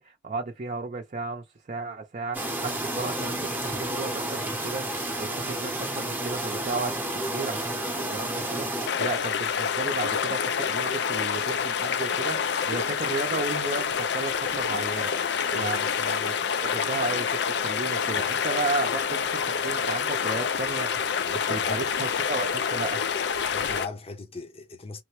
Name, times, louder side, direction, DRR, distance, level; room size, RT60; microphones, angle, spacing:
voice 1, 0.0-8.7 9.0-21.2 21.5-23.0, right 3 dB, 40° right, 0.6 m, -34 dB
sound 1, 2.3-8.9, right 1 dB, 10° right, 0.7 m, -31 dB
sound 2, 8.9-23.9, left 7 dB, 65° left, 0.5 m, -27 dB
voice 2, 21.2-21.9 23.5-25.0, left 3 dB, 30° left, 0.7 m, -39 dB
3.4 x 2.2 x 3.0 m
head